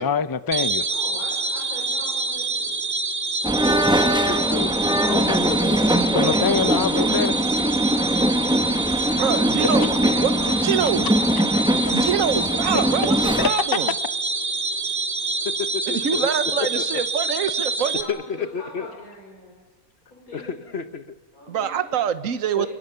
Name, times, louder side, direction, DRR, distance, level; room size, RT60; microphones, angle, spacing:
voice 1, 0.0-0.9 6.1-7.4 8.3-9.1 9.6-9.7 11.9-12.0 13.4-13.5, left 6 dB, 25° left, 14 dB, 0.4 m, -25 dB
sound 1, 0.5-18.0, right 3 dB, 50° right, 2.5 m, -26 dB
voice 2, 0.9-2.8 9.1-12.5 17.8-19.6 20.1-20.8 21.3-22.3 22.6-22.7, left 2 dB, 80° left, -3 dB, 6.5 m, -42 dB
sound 2, 3.4-13.5, equal, 5° right, 1.0 m, -22 dB
voice 3, 3.9-4.7 5.0-6.4 15.4-16.3 16.6-17.0 18.1-18.9 20.3-21.2 22.5-22.7, left 6 dB, 50° left, 10 dB, 1.3 m, -31 dB
voice 4, 9.2-9.9 10.2-10.3 10.6-11.1 11.9-13.9 16.0-18.0 21.5-22.7, right 8 dB, 65° right, 11 dB, 1.5 m, -25 dB
29.0 x 22.0 x 6.9 m, 1.2 s
omnidirectional pair, 1.5 m